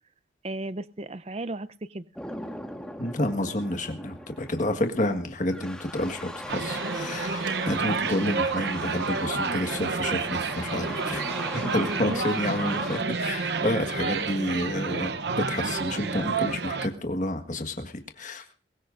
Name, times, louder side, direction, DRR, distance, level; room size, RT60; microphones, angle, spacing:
voice 1, 0.4-2.0 11.8-12.2 14.0-14.4, right 2 dB, 35° right, 15 dB, 0.6 m, -35 dB
sound 1, 2.2-13.0, left 1 dB, 5° left, 1.6 m, -40 dB
voice 2, 3.0-11.2 11.5-15.1 15.5-18.5, left 1 dB, 40° left, 6 dB, 1.6 m, -29 dB
sound 2, 5.9-16.6, right 2 dB, 80° right, 3.0 m, -46 dB
sound 3, 6.5-16.9, right 4 dB, 60° right, 0.8 m, -30 dB
22.0 x 19.0 x 2.6 m, 0.35 s
head